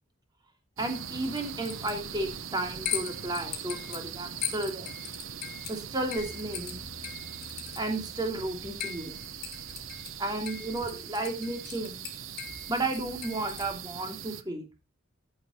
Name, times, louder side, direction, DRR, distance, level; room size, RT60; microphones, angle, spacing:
sound 1, 0.8-13.8, left 9 dB, 50° left, 3.8 m, -41 dB
voice 1, 0.8-4.9 5.7-6.8 7.8-9.1 10.2-12.0 12.7-14.6, right 2 dB, 20° right, 4 dB, 2.8 m, -33 dB
sound 2, 0.8-14.4, right 8 dB, 85° right, 0.9 m, -41 dB
sound 3, 6.2-10.5, left 2 dB, 10° left, 3.2 m, -52 dB
14.5 x 7.2 x 4.3 m, 0.27 s
head